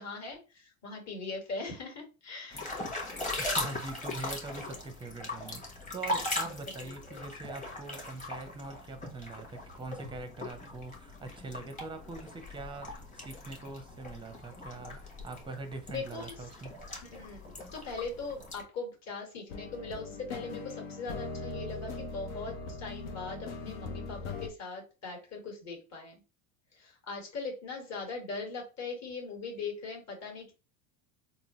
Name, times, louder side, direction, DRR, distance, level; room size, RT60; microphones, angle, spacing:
voice 1, 0.0-2.7 15.9-16.3 17.0-26.1 26.8-30.5, left 3 dB, 35° left, 1.5 m, -40 dB
sound 1, 2.5-18.6, left 2 dB, 15° left, 1.1 m, -39 dB
voice 2, 3.4-16.7, right 3 dB, 10° right, 0.6 m, -43 dB
sound 2, 19.5-24.5, left 4 dB, 70° left, 0.8 m, -40 dB
3.7 x 2.0 x 3.0 m
supercardioid pair, 105°, 44 cm